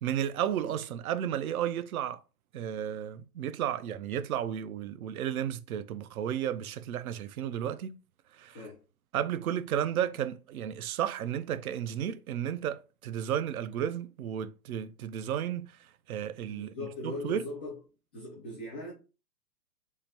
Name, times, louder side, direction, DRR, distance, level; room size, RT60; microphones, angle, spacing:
voice 1, 0.0-2.2 2.5-8.0 8.3-8.6 9.1-16.7 17.0-17.5, right 10 dB, 60° right, 0.6 m, -33 dB
voice 2, 8.5-8.8 16.5-17.8 18.1-18.9, left 2 dB, 10° left, 0.3 m, -40 dB
3.9 x 3.0 x 2.8 m
hypercardioid pair, 125°, 48 cm